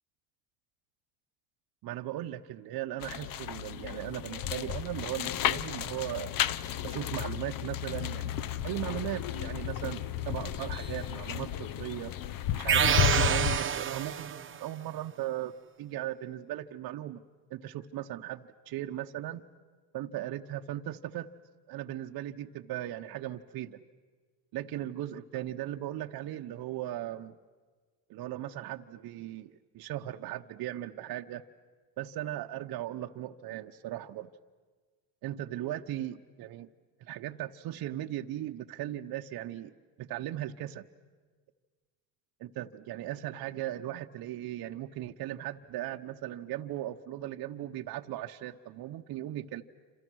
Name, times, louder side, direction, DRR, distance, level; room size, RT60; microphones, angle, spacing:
voice 1, 1.8-6.3 6.8-8.3 8.6-12.1 12.5-15.5 15.8-17.2 17.5-19.4 19.9-21.3 21.7-23.8 24.5-27.4 28.1-31.4 32.0-34.3 35.2-36.7 37.0-39.7 40.0-40.8 42.4-49.6, right 13 dB, 55° right, 4 dB, 0.9 m, -37 dB
sound 1, 3.0-13.6, left 11 dB, 50° left, 0.8 m, -33 dB
sound 2, 10.7-16.7 17.0-18.3, left 2 dB, 70° left, 6.4 m, -59 dB
sound 3, 12.7-14.6, right 8 dB, 30° right, 1.0 m, -27 dB
29.0 x 27.0 x 6.3 m, 1.4 s
supercardioid pair, 90°, 43 cm